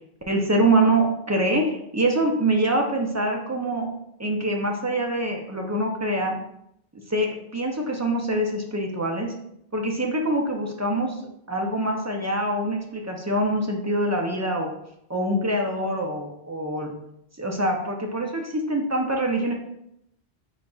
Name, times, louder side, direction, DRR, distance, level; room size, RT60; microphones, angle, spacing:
voice 1, 0.3-3.9 4.2-6.4 7.1-9.3 9.7-11.1 11.5-14.7 15.1-16.9 17.4-19.5, right 1 dB, 25° right, 1 dB, 0.4 m, -24 dB
5.1 x 3.9 x 2.3 m, 0.77 s
omnidirectional pair, 1.1 m